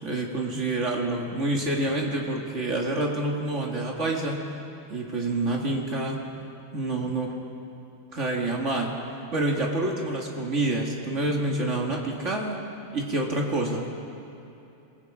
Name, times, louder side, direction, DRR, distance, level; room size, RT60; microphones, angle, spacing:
voice 1, 0.0-4.4 4.9-6.2 6.7-7.3 8.1-9.0 9.3-12.6 12.9-13.8, right 2 dB, 75° right, -1 dB, 2.6 m, -27 dB
27.0 x 22.0 x 4.9 m, 2.9 s
omnidirectional pair, 1.3 m